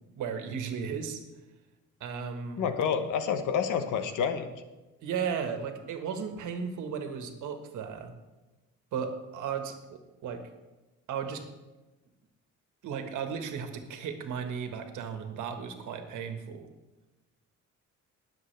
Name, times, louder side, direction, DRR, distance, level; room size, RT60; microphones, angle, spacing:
voice 1, 0.2-1.2 2.0-2.7 5.0-8.1 8.9-10.4 11.1-11.4 12.8-16.7, right 6 dB, 80° right, 6 dB, 1.6 m, -35 dB
voice 2, 2.6-4.5, left 7 dB, 85° left, 9 dB, 1.1 m, -28 dB
21.5 x 7.5 x 3.4 m, 1.1 s
cardioid pair, 90°, 30 cm